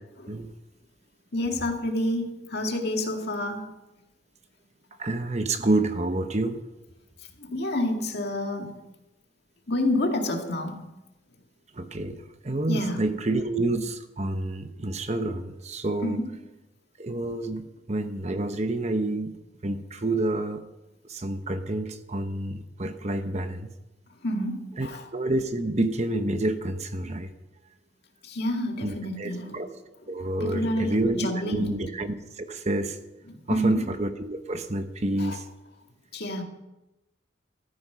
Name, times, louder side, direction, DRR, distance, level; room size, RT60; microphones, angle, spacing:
voice 1, 1.3-3.7 7.4-8.8 9.7-10.9 12.7-13.0 16.0-16.3 24.2-25.1 28.2-29.7 30.4-31.8 33.3-33.9 35.2-35.4 36.1-36.4, left 1 dB, 55° left, 3 dB, 2.1 m, -29 dB
voice 2, 5.0-6.6 11.7-16.2 17.0-19.4 19.6-20.6 21.1-23.7 24.8-27.3 28.8-29.7 30.1-33.0 33.5-35.4, right 2 dB, 35° right, 8 dB, 0.9 m, -28 dB
14.0 x 14.0 x 5.7 m, 1.0 s
head